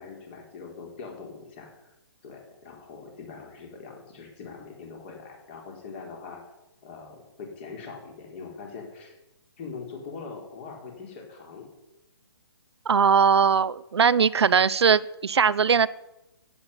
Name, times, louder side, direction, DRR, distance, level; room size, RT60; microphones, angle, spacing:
voice 1, 0.0-1.9 2.2-6.4 6.8-9.2 9.6-11.7, left 5 dB, 25° left, 2 dB, 4.0 m, -42 dB
voice 2, 12.9-15.9, right 6 dB, 80° right, 16 dB, 0.7 m, -20 dB
16.0 x 8.8 x 9.6 m, 0.94 s
hypercardioid pair, 170°, 14 cm